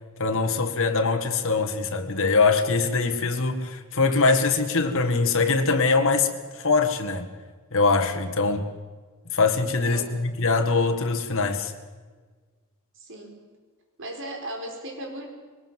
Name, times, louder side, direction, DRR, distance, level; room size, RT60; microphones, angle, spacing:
voice 1, 0.2-7.3 7.7-8.7 9.3-11.7, left 4 dB, 65° left, 1.9 m, -23 dB
voice 2, 12.9-13.4 14.0-15.3, right 1 dB, 60° right, 4.7 m, -36 dB
21.5 x 19.5 x 7.7 m
head